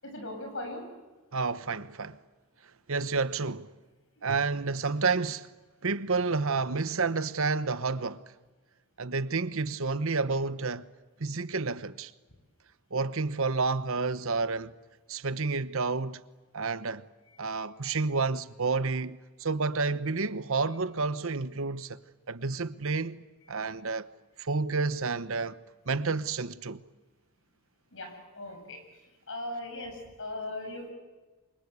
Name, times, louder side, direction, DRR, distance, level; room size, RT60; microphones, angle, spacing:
voice 1, 0.0-0.9 4.2-4.3 27.9-28.8 29.3-30.9, left 1 dB, 60° left, 7.5 m, -38 dB
voice 2, 1.3-2.2 2.9-3.7 4.2-5.5 5.8-8.2 9.0-10.9 11.2-12.1 12.9-14.7 15.1-16.2 16.5-17.0 17.4-22.0 22.3-24.1 24.4-25.6 25.9-26.8, right 4 dB, 65° right, 1.0 m, -30 dB
28.0 x 24.5 x 8.3 m
head